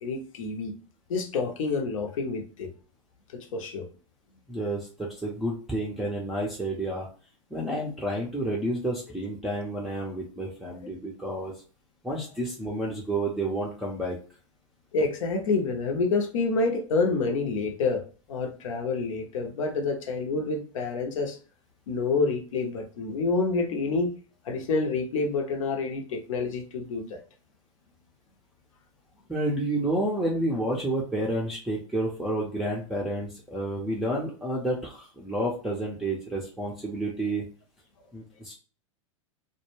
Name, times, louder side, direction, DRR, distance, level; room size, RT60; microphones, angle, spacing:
voice 1, 0.0-0.7 1.1-2.7 3.3-3.9 14.9-21.4 21.9-24.1 24.4-27.2, left 3 dB, 70° left, 3 dB, 0.7 m, -28 dB
voice 2, 4.5-7.1 7.5-11.5 12.0-14.2 29.3-37.4 38.1-38.5, right 1 dB, ahead, -5 dB, 0.5 m, -30 dB
2.2 x 2.2 x 3.0 m, 0.38 s
hypercardioid pair, 105°, 17 cm